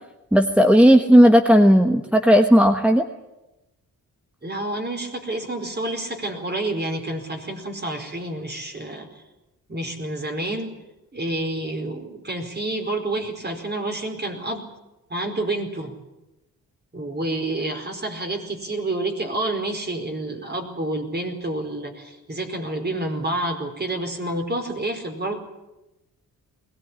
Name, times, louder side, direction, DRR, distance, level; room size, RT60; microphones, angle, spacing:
voice 1, 0.3-3.0, equal, 5° right, 4 dB, 1.3 m, -14 dB
voice 2, 4.4-9.1 9.7-10.7 11.1-14.6 15.1-15.9 16.9-25.4, right 2 dB, 30° right, 5 dB, 4.7 m, -28 dB
21.5 x 18.0 x 9.9 m, 0.99 s
cardioid pair, 85°, 36 cm